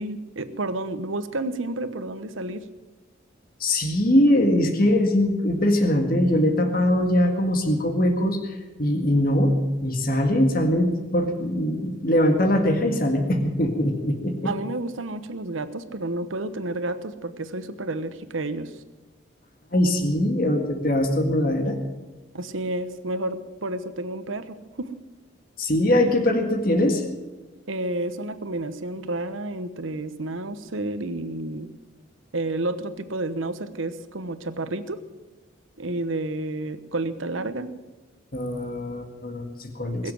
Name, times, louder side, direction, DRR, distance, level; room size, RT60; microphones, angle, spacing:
voice 1, 0.0-2.6 14.4-18.7 22.3-24.9 27.7-31.7 32.3-35.0 35.8-37.7 40.0-40.1, right 2 dB, 90° right, 11 dB, 1.1 m, -30 dB
voice 2, 3.6-9.5 9.8-14.4 19.7-21.8 25.6-27.0 38.3-40.1, left 1 dB, 45° left, 5 dB, 1.8 m, -22 dB
22.0 x 7.6 x 7.6 m, 1.2 s
head